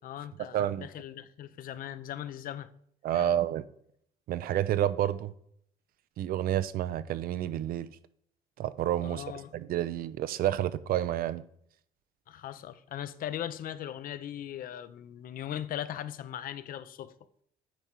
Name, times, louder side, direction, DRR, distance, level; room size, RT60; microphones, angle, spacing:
voice 1, 0.0-2.7 3.1-3.3 9.0-9.5 12.3-17.1, left 11 dB, 55° left, 0.6 m, -39 dB
voice 2, 0.5-0.9 3.0-3.6 4.3-5.3 6.2-7.9 8.6-9.2 9.5-11.4, right 11 dB, 60° right, 0.5 m, -29 dB
9.1 x 4.7 x 4.3 m
cardioid pair, 110°, 17 cm